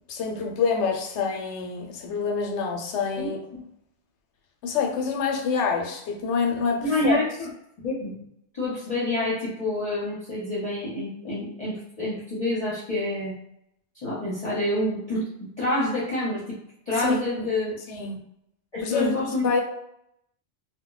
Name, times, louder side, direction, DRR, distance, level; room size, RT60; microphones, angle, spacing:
voice 1, 0.1-3.4 4.6-7.2 17.0-17.2 17.9-18.2 18.8-19.6, left 5 dB, 85° left, 2 dB, 0.9 m, -26 dB
voice 2, 3.2-3.6 6.8-7.5 7.8-8.1 8.5-13.3 14.0-16.6 16.9-17.7 18.7-19.5, left 1 dB, 35° left, -9 dB, 0.8 m, -28 dB
2.2 x 2.0 x 3.8 m, 0.77 s
omnidirectional pair, 1.2 m